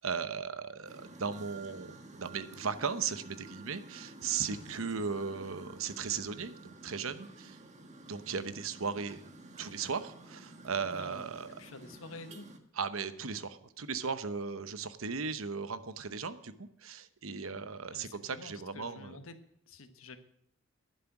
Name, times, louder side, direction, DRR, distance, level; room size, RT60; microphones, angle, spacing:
voice 1, 0.0-7.6 8.1-9.2 9.6-11.5 12.7-19.2, right 5 dB, 70° right, 12 dB, 0.9 m, -37 dB
sound 1, 0.9-12.6, right 2 dB, 35° right, 1.5 m, -51 dB
voice 2, 10.9-11.3 11.6-12.5 17.9-19.3 19.7-20.2, left 3 dB, 70° left, 9 dB, 1.4 m, -48 dB
11.5 x 11.0 x 6.0 m, 0.73 s
head